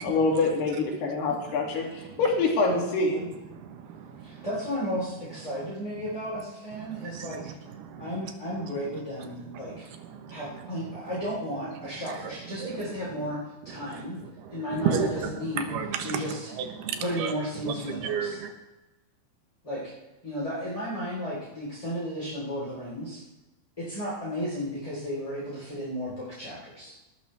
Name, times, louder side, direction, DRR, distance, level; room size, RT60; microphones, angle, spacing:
voice 1, 0.0-3.3, left 3 dB, 75° left, -1 dB, 4.7 m, -25 dB
voice 2, 1.8-2.2 3.5-4.5 6.8-8.3 8.6-11.0 11.8-13.3 13.7-18.5, right 7 dB, 75° right, 6 dB, 3.2 m, -35 dB
voice 3, 4.2-7.4 8.0-9.9 10.3-13.4 13.6-14.2 14.5-15.7 16.0-16.5 17.0-18.4 19.6-19.9 20.2-23.2 23.8-27.0, equal, 10° left, -8 dB, 4.0 m, -34 dB
19.0 x 13.0 x 3.5 m, 1.0 s
omnidirectional pair, 4.7 m